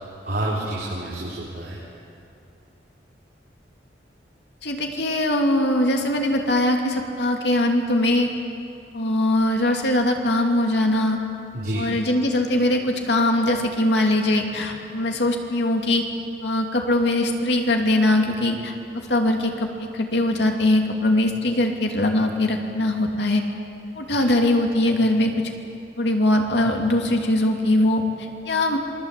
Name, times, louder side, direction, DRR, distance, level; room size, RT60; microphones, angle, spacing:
voice 1, 0.2-1.8 11.5-11.9 24.2-24.4, right 1 dB, 60° right, -6 dB, 4.6 m, -28 dB
voice 2, 4.6-8.3 8.9-11.2 11.7-16.0 16.4-23.4 23.9-25.5 26.0-28.8, left 1 dB, 75° left, 2 dB, 2.9 m, -21 dB
27.5 x 22.0 x 8.4 m, 2.7 s
head